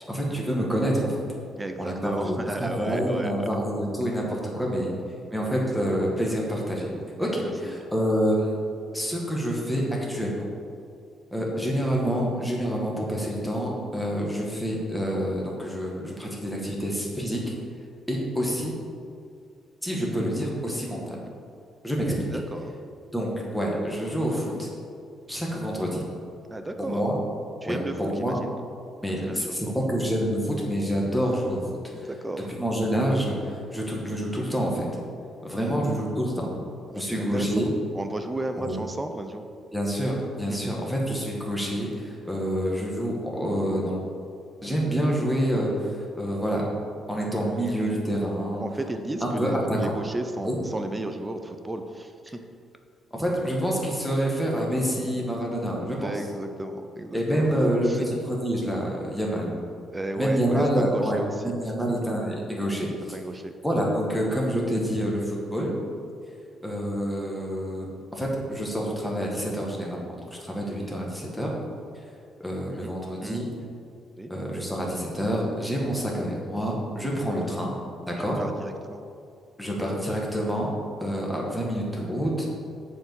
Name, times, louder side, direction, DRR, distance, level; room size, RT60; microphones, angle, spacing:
voice 1, 0.1-1.2 1.8-4.9 5.3-6.9 7.2-8.6 8.9-10.5 11.3-17.5 18.1-18.8 19.8-21.2 21.8-22.2 23.1-24.7 25.3-26.0 26.8-27.2 27.6-28.4 29.0-31.6 32.0-32.1 32.5-34.9 35.4-36.5 36.9-37.7 38.6-38.8 39.7-44.0 44.6-46.7 47.1-48.6 49.2-49.9 50.4-50.6 53.1-56.1 57.1-59.5 60.1-63.1 63.6-65.7 66.6-70.1 70.4-71.5 72.4-73.5 74.3-77.8 78.1-78.4 79.6-80.7 81.0-82.5, equal, ahead, -3 dB, 2.0 m, -27 dB
voice 2, 1.6-3.5 7.4-7.8 22.1-22.7 26.5-27.0 27.6-28.5 29.2-29.9 31.9-32.5 35.5-35.9 36.9-39.4 40.5-40.9 48.6-52.4 56.0-57.5 57.8-58.1 59.9-61.5 63.1-63.5 72.7-72.9 73.2-73.5 74.2-74.3 78.4-79.0, right 1 dB, 15° right, 7 dB, 0.7 m, -34 dB
7.4 x 4.9 x 7.3 m, 2.4 s
cardioid pair, 90°, 0 cm